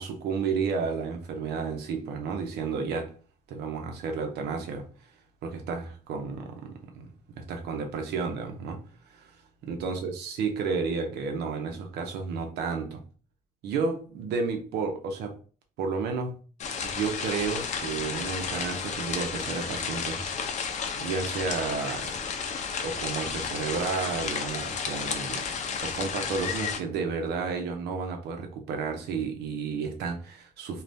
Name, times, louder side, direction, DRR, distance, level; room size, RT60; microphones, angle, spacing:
voice 1, 0.0-3.1 3.5-4.8 5.4-8.8 9.1-9.3 9.6-13.0 13.6-15.3 15.8-16.3 16.8-20.2 21.0-22.1 22.8-25.4 25.8-30.8, right 5 dB, 75° right, 4 dB, 0.8 m, -32 dB
sound 1, 16.6-26.8, left 6 dB, 45° left, 0.6 m, -32 dB
2.5 x 2.4 x 3.3 m, 0.38 s
cardioid pair, 110°, 17 cm